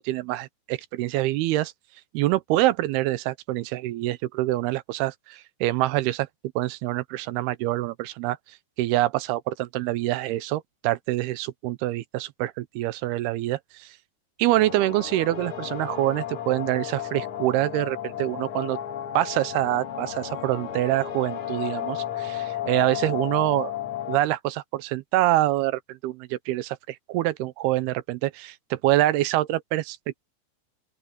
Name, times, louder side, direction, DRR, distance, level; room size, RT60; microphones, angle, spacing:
voice 1, 0.0-1.7 2.1-6.3 6.6-14.0 14.4-18.8 19.2-23.8 24.1-30.0, right 16 dB, 80° right, 2.6 m, -26 dB
sound 1, 14.5-24.2, left 10 dB, 65° left, 1.3 m, -33 dB
open air
omnidirectional pair, 4.8 m